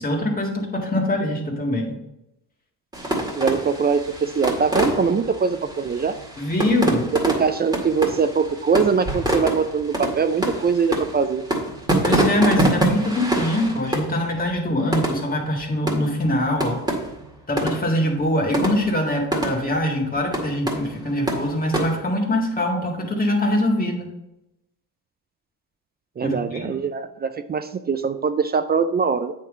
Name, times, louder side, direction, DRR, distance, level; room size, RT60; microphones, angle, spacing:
voice 1, 0.0-2.0 6.4-7.1 12.0-16.9 17.5-24.1 26.2-26.8, left 1 dB, 20° left, 0 dB, 1.9 m, -23 dB
sound 1, 2.9-22.0, right 1 dB, 10° right, 2.0 m, -26 dB
voice 2, 3.3-6.1 7.1-11.4 26.2-29.3, right 5 dB, 25° right, 10 dB, 0.4 m, -22 dB
8.3 x 3.7 x 4.9 m, 0.88 s
supercardioid pair, 90°, 43 cm